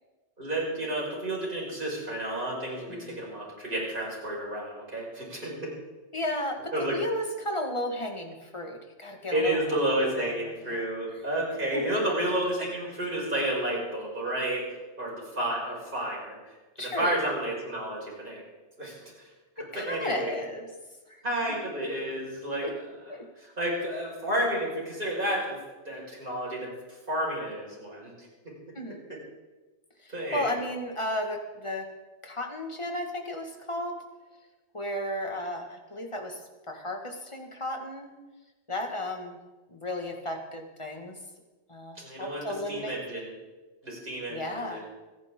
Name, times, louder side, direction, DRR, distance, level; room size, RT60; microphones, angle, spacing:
voice 1, 0.4-5.7 6.7-7.0 9.3-18.4 18.8-19.3 19.7-20.3 21.2-22.7 23.4-25.6 25.9-28.5 30.1-30.6 42.0-43.3 43.8-44.8, right 1 dB, 50° right, -4 dB, 5.7 m, -31 dB
voice 2, 2.9-3.2 6.1-9.6 10.0-10.3 10.7-10.8 11.7-11.8 16.8-17.3 19.7-20.7 21.1-21.2 22.6-22.7 23.1-23.3 28.7-29.0 30.0-31.9 32.2-34.0 34.7-38.1 38.7-39.4 39.7-41.2 41.7-43.0 44.3-44.8, left 1 dB, 25° left, 3 dB, 1.8 m, -34 dB
26.0 x 10.5 x 3.8 m, 1.2 s
omnidirectional pair, 1.2 m